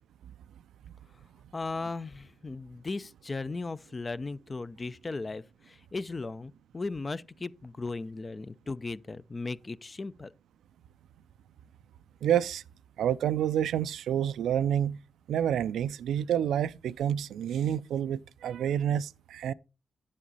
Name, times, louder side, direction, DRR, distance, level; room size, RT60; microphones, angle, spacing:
voice 1, 1.5-10.3, left 3 dB, 35° left, 0.5 m, -37 dB
voice 2, 12.2-12.6 13.0-15.0 15.3-19.5, right 10 dB, 90° right, 0.4 m, -28 dB
10.0 x 7.4 x 4.0 m
cardioid pair, 65°, 0 cm